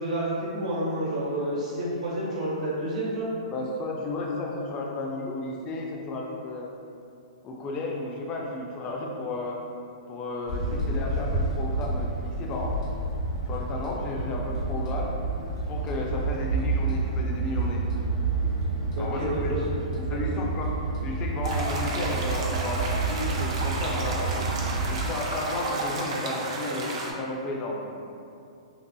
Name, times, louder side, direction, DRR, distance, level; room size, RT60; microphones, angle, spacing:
voice 1, 0.0-3.3 18.9-19.6 20.1-20.2, right 1 dB, 80° right, -7 dB, 1.0 m, -29 dB
voice 2, 3.5-6.7 7.4-9.6 10.1-12.8 13.5-15.2 15.7-17.9 19.0-19.5 20.0-24.5 24.9-28.0, left 2 dB, 25° left, -1 dB, 0.3 m, -33 dB
sound 1, 10.5-25.1, right 3 dB, 60° left, 0.7 m, -29 dB
sound 2, 21.4-27.1, right 2 dB, 55° right, 0.4 m, -32 dB
2.7 x 2.3 x 2.2 m, 2.5 s
hypercardioid pair, 140°, 4 cm